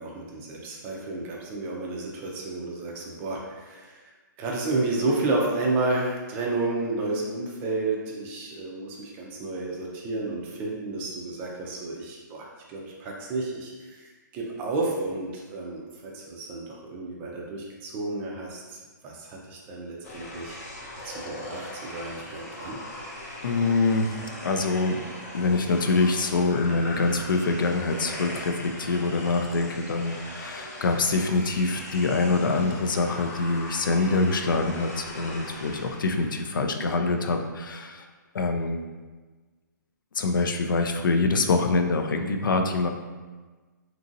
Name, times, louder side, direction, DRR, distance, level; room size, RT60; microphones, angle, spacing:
voice 1, 0.0-4.0 4.4-18.8 19.0-20.6 21.0-22.8, right 2 dB, 15° right, -2 dB, 0.3 m, -31 dB
sound 1, 20.0-37.4, left 1 dB, 45° left, 0.7 m, -40 dB
voice 2, 23.4-24.1 24.4-25.0 25.3-38.0 38.3-38.8 40.2-42.9, left 3 dB, 90° left, 5 dB, 0.4 m, -25 dB
2.9 x 2.6 x 2.5 m, 1.3 s
hypercardioid pair, 155°, 11 cm